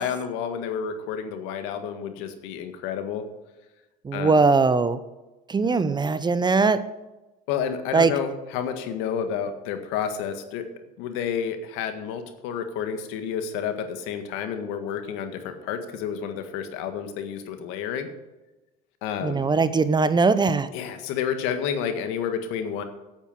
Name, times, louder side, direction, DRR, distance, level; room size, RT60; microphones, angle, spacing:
voice 1, 0.0-3.3 4.1-4.4 7.5-10.7 11.0-18.1 19.0-19.5 20.7-22.8, left 7 dB, 70° left, 8 dB, 1.8 m, -30 dB
voice 2, 4.0-5.0 5.5-6.8 7.9-8.1 19.2-20.7, right 4 dB, 20° right, 13 dB, 0.8 m, -20 dB
9.2 x 8.3 x 7.5 m, 1.1 s
supercardioid pair, 90°, 21 cm